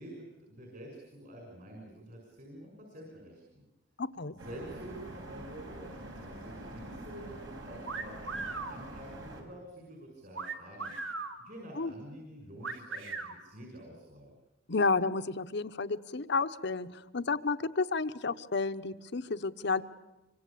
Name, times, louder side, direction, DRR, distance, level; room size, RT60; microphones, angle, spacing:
voice 1, 0.0-3.6 4.4-10.9 11.4-14.3, right 1 dB, 50° right, 1 dB, 6.0 m, -48 dB
voice 2, 4.0-4.3 11.7-11.9 14.7-19.8, left 4 dB, 60° left, 12 dB, 1.0 m, -31 dB
sound 1, 4.4-9.4, right 1 dB, 70° right, 6.0 m, -45 dB
sound 2, 7.8-8.8 10.3-11.4 12.6-13.3, right 4 dB, 90° right, 2.8 m, -38 dB
25.5 x 24.5 x 8.6 m, 0.98 s
head